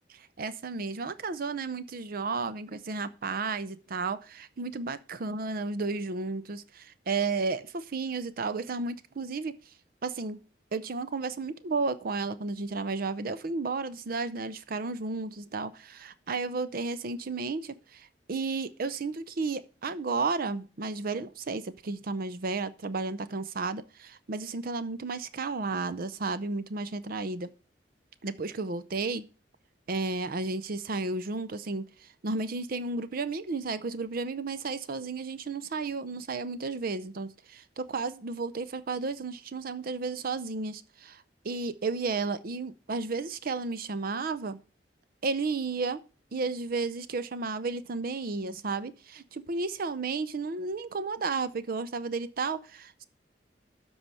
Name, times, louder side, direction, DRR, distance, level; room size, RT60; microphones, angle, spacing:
voice 1, 0.4-9.5 10.0-10.4 10.7-27.5 28.2-29.3 29.9-44.6 45.2-46.0 46.3-53.0, right 4 dB, 55° right, 0.6 m, -33 dB
13.0 x 4.7 x 5.4 m
head